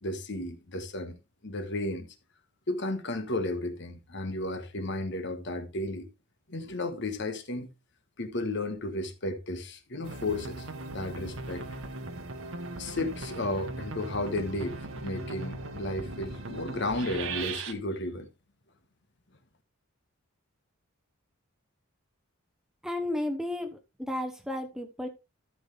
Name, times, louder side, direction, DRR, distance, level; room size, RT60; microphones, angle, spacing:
voice 1, 0.0-1.2 1.4-2.1 2.7-6.1 6.5-7.7 8.2-10.7 10.9-11.6 12.8-14.8 15.0-18.3, left 2 dB, 55° left, 1.4 m, -33 dB
sound 1, 10.0-17.7, right 3 dB, 65° right, 1.3 m, -39 dB
voice 2, 22.8-25.1, left 1 dB, ahead, 1.0 m, -33 dB
13.5 x 6.0 x 3.4 m
head